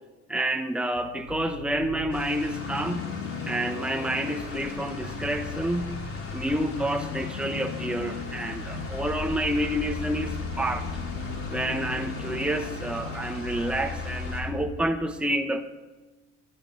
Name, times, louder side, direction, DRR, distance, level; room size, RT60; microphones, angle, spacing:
voice 1, 0.3-3.1 3.5-6.0 6.3-10.9 11.5-15.6, right 1 dB, 5° right, 5 dB, 1.1 m, -29 dB
sound 1, 1.0-14.7, left 4 dB, 85° left, 1.6 m, -36 dB
sound 2, 2.1-14.4, left 3 dB, 45° left, 4.6 m, -42 dB
22.5 x 12.5 x 4.0 m, 1.2 s
cardioid pair, 90°, 30 cm